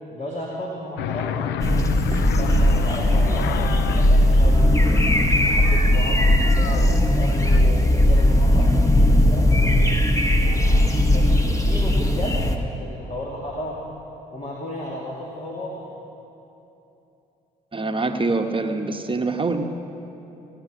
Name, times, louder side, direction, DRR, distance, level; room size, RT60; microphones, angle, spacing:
voice 1, 0.1-1.6 2.2-5.0 5.4-9.9 10.4-12.4 12.7-13.8 14.3-15.8, left 1 dB, 35° left, -4 dB, 2.6 m, -33 dB
sound 1, 1.0-7.6, left 12 dB, 65° left, 0.4 m, -31 dB
sound 2, 1.6-12.6, left 1 dB, 15° left, 1.6 m, -18 dB
voice 2, 17.7-19.6, right 3 dB, 25° right, 5 dB, 1.2 m, -25 dB
18.5 x 9.7 x 6.1 m, 2.9 s
hypercardioid pair, 55°, 20 cm